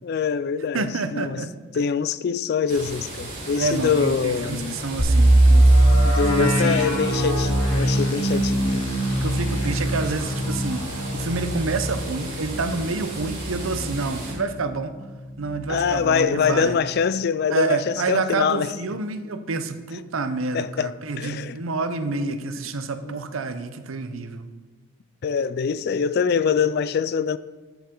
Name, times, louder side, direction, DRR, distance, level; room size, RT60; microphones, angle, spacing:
voice 1, 0.0-1.4 1.7-4.8 6.0-8.7 15.7-18.7 20.5-20.9 21.2-21.6 22.1-22.6 23.0-23.2 25.2-27.4, left 6 dB, 50° left, 0.3 m, -24 dB
voice 2, 0.7-1.5 3.6-7.2 8.3-8.5 9.2-14.9 15.4-16.8 17.5-24.5, right 3 dB, 75° right, 0.7 m, -28 dB
sound 1, 2.7-14.3, right 2 dB, 45° right, 3.6 m, -36 dB
sound 2, 5.0-14.7 15.1-15.2 15.7-15.9, right 1 dB, 90° left, 2.0 m, -21 dB
13.0 x 7.1 x 3.8 m
head